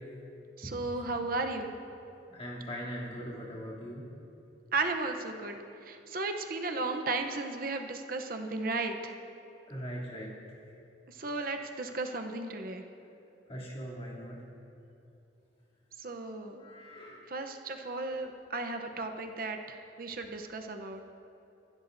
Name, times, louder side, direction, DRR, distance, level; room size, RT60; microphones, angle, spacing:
voice 1, 0.6-1.7 4.7-5.6 5.9-9.2 11.1-12.8 16.0-16.6 17.3-21.1, right 3 dB, 50° right, 4 dB, 0.8 m, -35 dB
voice 2, 2.3-4.0 9.7-10.3 13.5-14.4 16.6-17.3, equal, 30° left, -6 dB, 2.9 m, -40 dB
26.0 x 12.0 x 2.6 m, 2.8 s
head